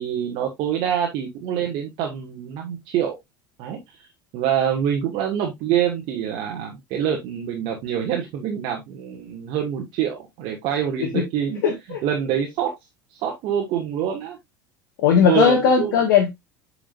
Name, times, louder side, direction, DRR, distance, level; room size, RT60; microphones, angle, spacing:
voice 1, 0.0-3.2 3.6-4.1 4.3-11.6 12.0-12.8 13.1-14.4 15.2-16.0, right 9 dB, 55° right, 1.6 m, -25 dB
voice 2, 11.6-12.0 15.0-16.3, left 7 dB, 65° left, 1.5 m, -18 dB
8.8 x 5.0 x 2.5 m
figure-of-eight pair, 70°, 11 cm